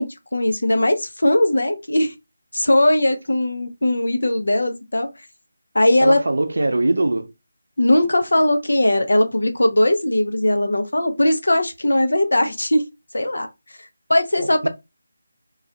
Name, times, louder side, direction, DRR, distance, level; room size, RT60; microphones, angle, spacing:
voice 1, 0.0-2.1 2.5-5.1 5.7-6.2 7.8-12.8 13.1-13.5 14.1-14.7, left 1 dB, 90° left, 0.6 m, -19 dB
voice 2, 6.0-7.3 14.4-14.7, right 2 dB, 80° right, 0.4 m, -22 dB
2.3 x 2.1 x 3.7 m
figure-of-eight pair, 170°, 0 cm